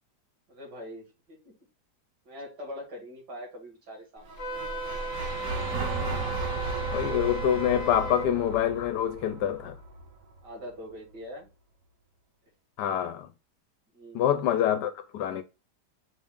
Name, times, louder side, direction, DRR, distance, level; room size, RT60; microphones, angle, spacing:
voice 1, 0.5-1.5 2.2-4.5 10.4-11.5 13.9-14.4, left 1 dB, 80° right, 2.6 m, -43 dB
sound 1, 4.2-10.4, right 3 dB, 60° right, 1.2 m, -35 dB
Wind instrument woodwind instrument, 4.4-8.3, right 2 dB, 60° left, 1.0 m, -36 dB
voice 2, 6.9-9.8 12.8-13.3 14.1-15.4, left 10 dB, 90° left, 1.3 m, -26 dB
5.9 x 2.5 x 3.6 m
omnidirectional pair, 1.8 m